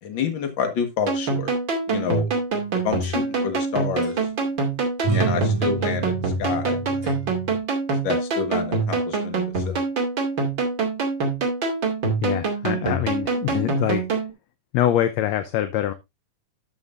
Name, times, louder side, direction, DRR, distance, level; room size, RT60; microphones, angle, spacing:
voice 1, 0.0-1.5 1.9-2.3 2.8-4.2 5.1-7.1 7.9-9.8, left 7 dB, 45° left, 1.9 m, -28 dB
sound 1, 1.1-14.3, right 4 dB, 40° right, 3.0 m, -25 dB
sound 2, 2.5-3.7 4.0-4.2 5.0-7.6, right 3 dB, 60° right, 4.6 m, -30 dB
voice 2, 12.2-14.0 14.7-15.9, left 12 dB, 75° left, 1.7 m, -24 dB
12.5 x 7.4 x 2.6 m
omnidirectional pair, 3.7 m